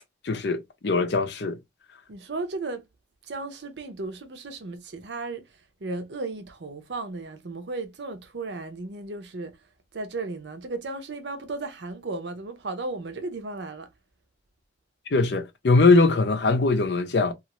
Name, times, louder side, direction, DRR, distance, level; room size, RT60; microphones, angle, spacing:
voice 1, 0.2-1.6 15.1-17.3, left 3 dB, 65° left, 0.6 m, -21 dB
voice 2, 2.1-2.9 3.3-5.4 5.8-9.5 9.9-13.9, right 3 dB, 75° right, 0.7 m, -35 dB
2.5 x 2.4 x 2.9 m
head